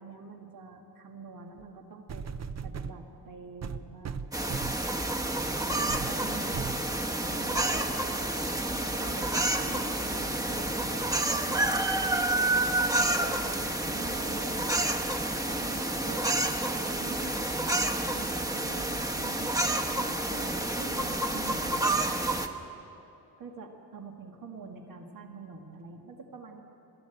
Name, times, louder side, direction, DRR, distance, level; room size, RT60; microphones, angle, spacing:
voice 1, 0.0-2.3 2.6-4.2 5.7-6.6 7.3-8.3 8.7-12.6 13.2-14.8 15.5-21.9 23.4-26.6, right 4 dB, 60° right, 3 dB, 1.9 m, -45 dB
sound 1, 1.6-1.7 2.1-3.0 3.6-4.9 5.4-5.5 5.9-6.1 6.5-6.8 7.5-7.6, right 6 dB, 45° right, 0.7 m, -37 dB
sound 2, 4.3-22.5, right 2 dB, 10° right, 1.2 m, -29 dB
21.5 x 14.5 x 9.2 m, 2.8 s
wide cardioid pair, 115°, 37 cm